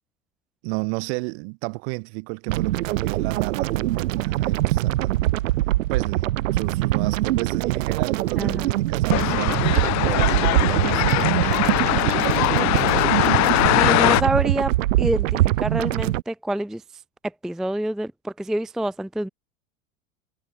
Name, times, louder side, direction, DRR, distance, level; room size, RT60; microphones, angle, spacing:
voice 1, 0.6-5.3 5.9-6.2 6.5-11.5, right 33 dB, 55° right, 2.7 m, -32 dB
sound 1, 2.5-16.2, right 16 dB, 75° right, 0.5 m, -23 dB
voice 2, 8.4-8.7 13.7-14.7 15.0-16.8 17.4-19.3, right 1 dB, ahead, 0.5 m, -26 dB
sound 2, 9.1-14.2, left 19 dB, 45° left, 2.0 m, -21 dB
hypercardioid pair, 90°, 39 cm